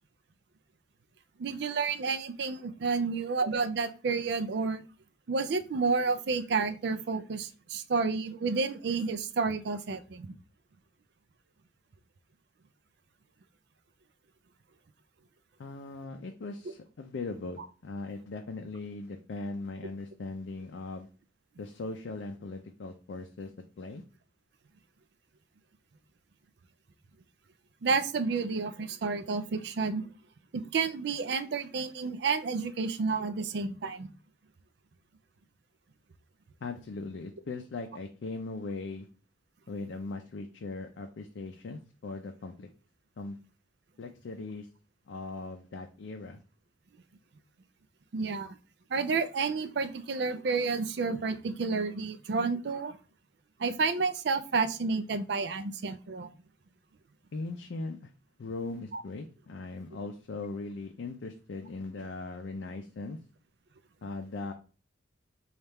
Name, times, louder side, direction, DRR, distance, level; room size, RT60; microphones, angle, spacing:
voice 1, 1.4-4.8 5.3-10.3 27.8-30.0 30.5-34.1 48.1-48.6 48.9-53.0 53.6-56.3 58.9-59.0, right 4 dB, 60° right, 11 dB, 0.4 m, -30 dB
voice 2, 15.6-21.1 21.6-23.5 23.8-24.0 36.6-39.1 39.7-42.7 43.2-43.4 44.0-44.7 45.1-46.4 57.3-58.1 58.4-63.2 64.0-64.5, left 3 dB, 70° left, 4 dB, 0.4 m, -39 dB
3.4 x 2.4 x 4.2 m, 0.36 s
head